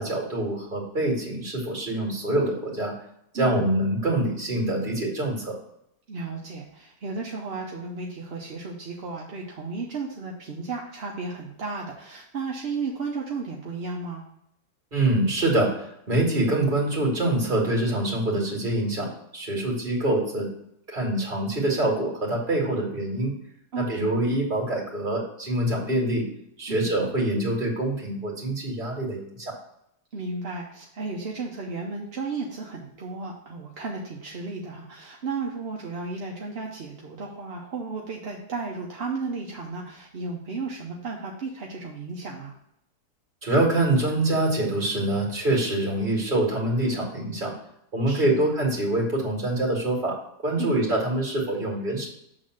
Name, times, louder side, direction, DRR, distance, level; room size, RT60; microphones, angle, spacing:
voice 1, 0.0-2.9 3.3-5.6 14.9-20.5 20.9-23.3 23.8-26.2 26.6-29.5 43.4-47.5 47.9-50.2 50.4-52.1, right 1 dB, 30° right, -1 dB, 2.4 m, -25 dB
voice 2, 6.1-14.2 23.7-24.1 26.7-26.9 30.1-42.5 48.1-48.4 50.6-50.7, right 4 dB, 45° right, -1 dB, 0.9 m, -34 dB
7.5 x 4.0 x 6.3 m, 0.76 s
omnidirectional pair, 1.7 m